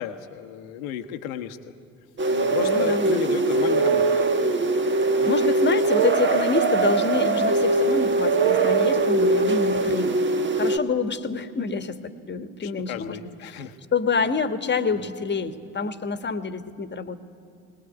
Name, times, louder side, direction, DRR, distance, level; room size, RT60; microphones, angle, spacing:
voice 1, 0.0-1.7 2.3-4.2 5.2-5.3 12.6-13.8 14.9-15.1, left 10 dB, 70° left, 7 dB, 1.3 m, -33 dB
sound 1, 2.2-10.8, right 3 dB, 25° right, 1.3 m, -21 dB
voice 2, 2.6-3.3 5.3-10.2 10.5-13.2 13.5-13.6 13.9-17.2, left 4 dB, 25° left, 10 dB, 1.5 m, -27 dB
21.5 x 20.5 x 9.4 m, 2.6 s
figure-of-eight pair, 55°, 43 cm